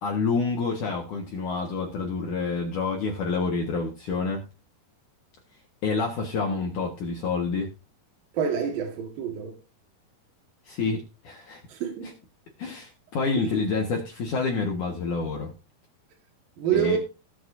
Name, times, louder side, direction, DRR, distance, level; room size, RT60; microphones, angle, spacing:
voice 1, 0.0-4.4 5.8-7.7 10.7-11.6 12.6-15.5 16.7-17.0, left 4 dB, 60° left, 2.7 m, -28 dB
voice 2, 8.3-9.6 11.7-12.1 13.4-13.5 16.6-17.0, right 8 dB, 65° right, 3.5 m, -27 dB
19.5 x 6.6 x 2.6 m
omnidirectional pair, 4.5 m